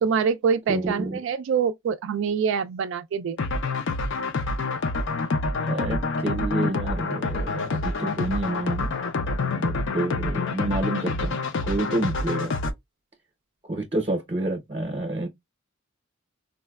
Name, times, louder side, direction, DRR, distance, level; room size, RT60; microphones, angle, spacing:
voice 1, 0.0-3.4, right 6 dB, 65° right, 0.3 m, -25 dB
voice 2, 0.7-1.2 5.6-8.9 9.5-12.6 13.7-15.3, right 2 dB, 30° right, 0.6 m, -29 dB
sound 1, 3.4-12.7, left 3 dB, 65° left, 0.5 m, -27 dB
4.0 x 2.2 x 2.2 m
head